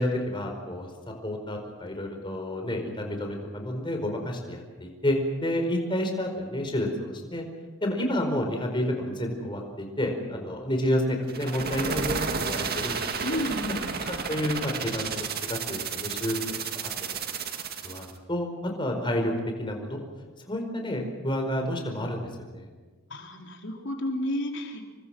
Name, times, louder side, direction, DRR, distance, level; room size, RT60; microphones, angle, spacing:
voice 1, 0.0-7.4 7.8-13.4 14.1-17.2 17.8-19.3 19.6-20.0 20.5-22.7, left 1 dB, 25° left, 3 dB, 4.8 m, -30 dB
sound 1, 11.3-18.1, right 5 dB, 50° right, 2.1 m, -32 dB
voice 2, 13.2-14.0 23.1-24.8, left 1 dB, 60° left, 2 dB, 3.8 m, -31 dB
28.5 x 24.0 x 6.2 m, 1.4 s
head